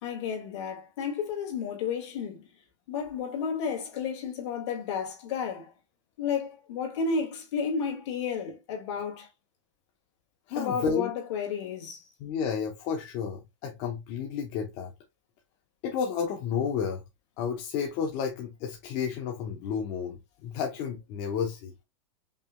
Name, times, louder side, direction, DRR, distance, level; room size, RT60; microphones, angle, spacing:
voice 1, 0.0-2.4 2.9-5.7 6.2-9.3 10.6-12.0, left 6 dB, 70° left, 2.2 m, -32 dB
voice 2, 10.5-11.1 12.2-14.9 15.8-17.0 17.4-21.7, left 7 dB, 45° left, 0.9 m, -31 dB
5.4 x 3.4 x 2.2 m
supercardioid pair, 150°, 16 cm